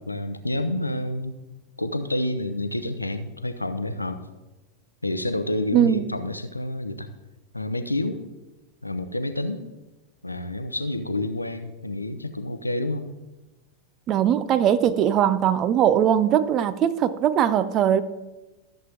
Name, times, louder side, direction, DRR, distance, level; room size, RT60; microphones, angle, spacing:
voice 1, 0.0-1.3 1.8-4.2 5.0-7.1 7.5-8.2 8.8-9.7 10.2-13.0, left 1 dB, 85° left, 10 dB, 0.7 m, -28 dB
voice 2, 5.7-6.0 14.1-18.0, right 9 dB, 35° right, 14 dB, 0.6 m, -20 dB
13.5 x 7.6 x 3.5 m, 1.1 s
figure-of-eight pair, 90°, 0 cm